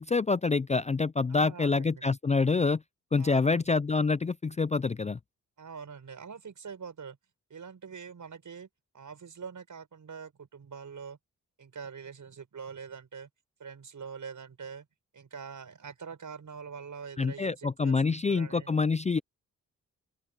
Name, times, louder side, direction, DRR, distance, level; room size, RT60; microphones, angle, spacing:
voice 1, 0.0-2.8 3.1-5.2 17.2-19.2, left 4 dB, 20° left, 0.4 m, -26 dB
voice 2, 1.3-2.1 3.2-3.6 5.6-7.2 7.5-8.7 8.9-11.2 11.6-13.3 13.6-14.9 15.1-18.7, right 6 dB, 65° right, 6.4 m, -44 dB
open air
cardioid pair, 60°, 33 cm